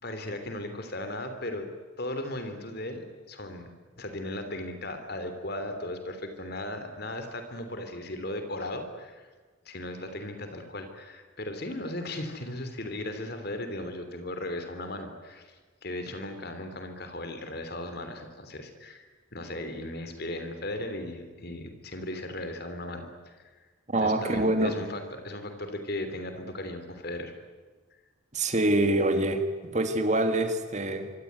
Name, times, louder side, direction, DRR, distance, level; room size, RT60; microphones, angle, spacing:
voice 1, 0.0-1.7 2.0-3.7 4.0-9.3 9.6-19.0 19.3-23.5 24.0-27.3, left 1 dB, 50° left, 8 dB, 3.3 m, -37 dB
voice 2, 23.9-24.9 28.3-31.1, right 1 dB, 35° right, 7 dB, 2.2 m, -25 dB
25.5 x 24.5 x 9.6 m, 1.4 s
head